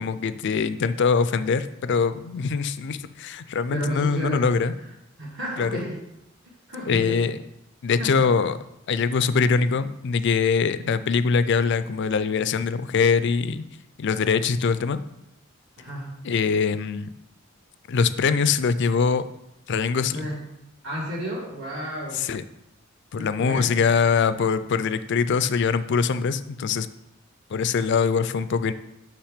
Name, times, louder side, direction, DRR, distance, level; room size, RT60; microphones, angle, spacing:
voice 1, 0.0-4.7 5.6-5.7 6.9-7.4 7.8-8.6 8.9-13.6 14.0-15.0 16.2-17.1 17.9-19.2 19.7-20.3 22.1-22.4 23.1-26.9 27.5-28.7, left 5 dB, 60° left, 13 dB, 0.4 m, -23 dB
voice 2, 3.7-4.5 5.2-6.0 6.7-7.2 8.0-8.2 15.8-16.1 20.1-20.4 20.8-22.2 23.2-23.7, equal, 65° right, -9 dB, 1.9 m, -32 dB
5.9 x 5.9 x 5.0 m, 0.86 s
head